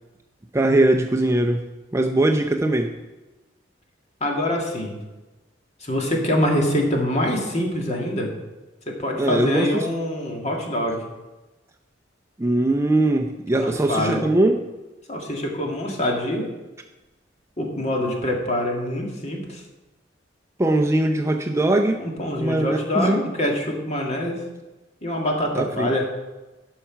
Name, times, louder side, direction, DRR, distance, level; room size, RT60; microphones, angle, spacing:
voice 1, 0.5-1.6 1.9-2.9 9.2-9.9 12.4-14.6 20.6-22.1 22.4-23.2 25.5-25.9, right 1 dB, 15° right, 3 dB, 0.5 m, -21 dB
voice 2, 4.2-5.0 5.8-8.3 8.9-11.0 13.5-14.2 15.1-16.5 17.6-19.6 22.0-24.4 25.0-26.2, left 1 dB, 35° left, 0 dB, 1.9 m, -25 dB
11.5 x 5.6 x 5.8 m, 1.1 s
head